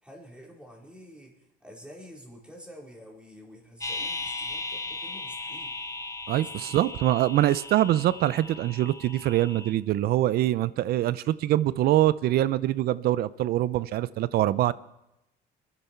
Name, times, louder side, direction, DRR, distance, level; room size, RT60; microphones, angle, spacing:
voice 1, 0.0-5.8 6.4-6.9, equal, 5° right, 4.1 m, -48 dB
sound 1, 3.8-9.7, left 3 dB, 20° left, 1.0 m, -37 dB
voice 2, 6.3-14.7, right 14 dB, 65° right, 0.5 m, -24 dB
24.0 x 11.0 x 4.5 m
cardioid pair, 110°, 17 cm